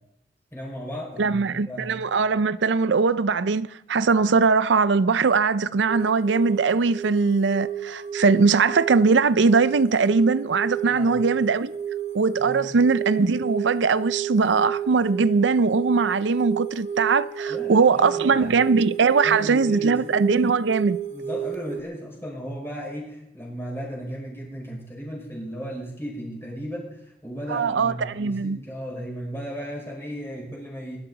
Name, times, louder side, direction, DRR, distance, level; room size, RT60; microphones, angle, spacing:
voice 1, 0.5-2.0 10.9-11.3 12.4-12.7 17.5-18.7 19.2-20.0 21.1-31.0, equal, 15° left, 5.5 m, -35 dB
voice 2, 1.2-11.7 12.1-21.0 27.5-28.6, right 4 dB, 90° right, 0.5 m, -21 dB
sound 1, 5.9-21.8, right 8 dB, 40° right, 1.0 m, -31 dB
22.5 x 12.5 x 4.1 m
head